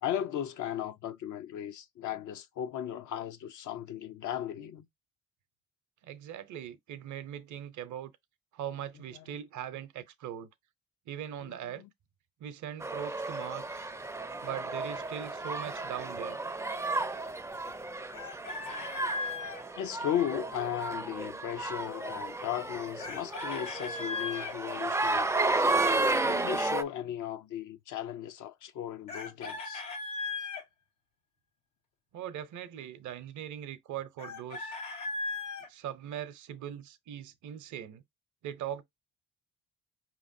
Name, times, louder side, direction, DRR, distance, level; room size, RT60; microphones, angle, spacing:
voice 1, 0.0-4.9 9.0-9.4 11.4-11.9 19.8-25.7 26.2-29.8, left 10 dB, 70° left, 0.6 m, -36 dB
voice 2, 6.0-8.1 8.5-10.5 11.1-11.8 12.4-13.9 14.4-16.4 32.1-34.8 35.7-38.0 38.4-38.8, right 10 dB, 65° right, 0.7 m, -40 dB
sound 1, 12.8-26.8, right 2 dB, 10° right, 0.4 m, -33 dB
Chicken rooster, 18.1-19.6 23.0-24.6 29.1-30.6 34.2-35.7, left 3 dB, 90° left, 1.1 m, -37 dB
5.0 x 2.9 x 2.6 m
supercardioid pair, 65°, 32 cm